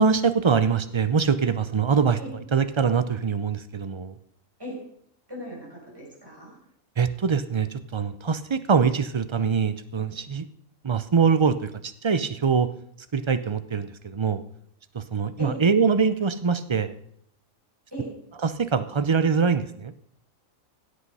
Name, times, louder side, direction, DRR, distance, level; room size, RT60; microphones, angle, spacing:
voice 1, 0.0-2.2 2.5-4.2 7.0-10.5 10.8-12.7 13.1-14.4 14.9-16.9 18.4-19.9, right 5 dB, 45° right, 13 dB, 0.3 m, -23 dB
voice 2, 5.3-6.6 15.4-15.6 17.9-18.1, right 1 dB, 15° right, -4 dB, 6.2 m, -37 dB
16.5 x 8.4 x 5.5 m, 0.69 s
omnidirectional pair, 1.4 m